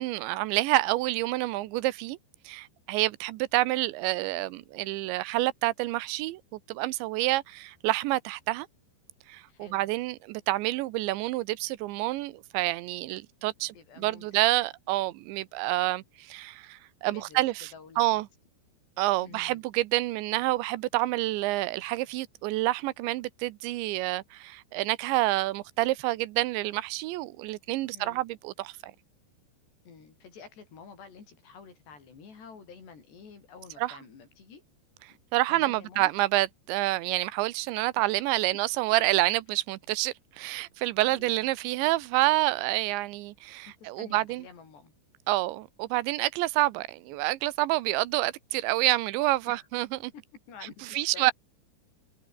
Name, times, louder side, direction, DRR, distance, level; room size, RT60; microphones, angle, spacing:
voice 1, 0.0-2.2 2.5-8.7 9.3-17.7 18.0-18.3 19.0-28.7 33.8-34.0 35.3-44.4 45.3-50.1 50.9-51.3, right 18 dB, 85° right, 3.2 m, -28 dB
voice 2, 9.5-9.9 13.7-14.5 17.1-17.4 17.7-18.2 19.2-19.6 27.9-28.2 29.9-34.6 35.5-36.1 38.0-38.1 38.5-38.6 41.0-41.5 43.8-44.9 49.5-49.7 50.1-50.2 50.5-51.3, left 5 dB, 70° left, 7.8 m, -49 dB
omnidirectional pair, 5.1 m